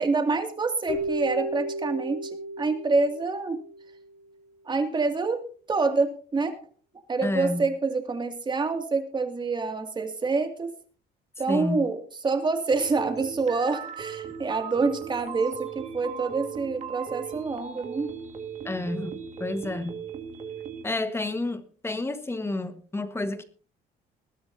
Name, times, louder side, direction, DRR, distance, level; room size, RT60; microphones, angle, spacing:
voice 1, 0.0-3.6 4.7-6.5 7.1-10.7 11.4-12.0 12.2-18.1, right 4 dB, 25° right, 2.5 m, -27 dB
Keyboard (musical), 0.9-4.1, right 1 dB, 85° left, 5.1 m, -34 dB
voice 2, 7.2-7.7 11.5-11.8 18.6-19.9 20.8-23.4, left 2 dB, 15° left, 1.5 m, -30 dB
sound 1, 12.7-20.8, right 7 dB, 45° right, 2.0 m, -38 dB
20.5 x 12.5 x 2.8 m
cardioid pair, 110°, 17 cm